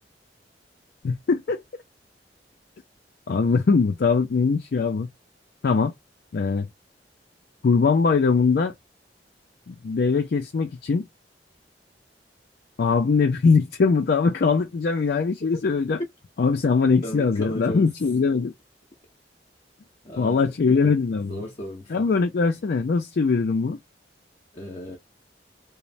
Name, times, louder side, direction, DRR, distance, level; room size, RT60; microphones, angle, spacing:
voice 1, 1.0-1.6 3.3-5.1 5.6-5.9 6.3-6.7 7.6-8.7 9.7-11.1 12.8-16.0 16.4-18.5 20.2-21.4 21.9-23.8, left 4 dB, 60° left, 0.4 m, -21 dB
voice 2, 17.0-17.9 20.0-22.1 24.5-25.0, equal, 30° left, 0.7 m, -36 dB
3.0 x 2.0 x 2.5 m
head